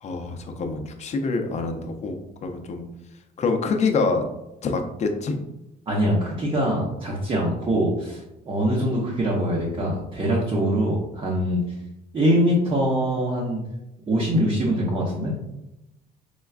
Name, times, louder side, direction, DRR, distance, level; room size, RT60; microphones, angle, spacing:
voice 1, 0.0-2.9 3.4-4.2 4.6-5.4, left 4 dB, 40° left, 5 dB, 0.5 m, -26 dB
voice 2, 5.9-11.6 12.1-13.6 14.1-15.3, equal, 30° right, -4 dB, 0.8 m, -23 dB
4.3 x 2.3 x 2.4 m, 0.90 s
cardioid pair, 110°, 17 cm